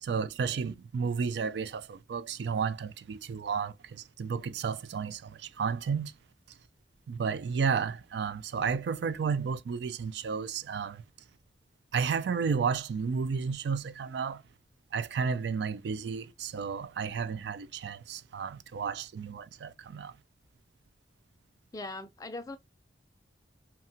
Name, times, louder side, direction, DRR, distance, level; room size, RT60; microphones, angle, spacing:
voice 1, 0.0-6.1 7.1-11.0 11.9-14.4 14.9-20.1, right 6 dB, 70° right, 0.3 m, -32 dB
voice 2, 21.7-22.6, left 2 dB, 20° left, 0.4 m, -40 dB
2.8 x 2.3 x 2.6 m
head